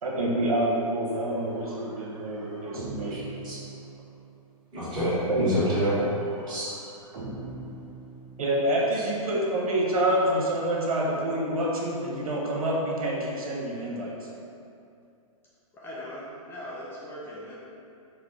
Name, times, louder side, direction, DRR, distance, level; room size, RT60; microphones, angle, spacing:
voice 1, 0.0-3.2 5.3-5.6 8.4-14.1, right 1 dB, 85° right, -3 dB, 1.0 m, -27 dB
sound 1, 1.1-4.4 5.5-8.8, right 3 dB, 40° right, 0.7 m, -42 dB
voice 2, 3.1-3.6 4.7-6.0 6.5-6.7, equal, 25° right, -10 dB, 1.5 m, -27 dB
voice 3, 15.7-17.6, equal, 10° left, -6 dB, 0.3 m, -40 dB
4.5 x 2.2 x 3.6 m, 2.6 s
hypercardioid pair, 140°, 18 cm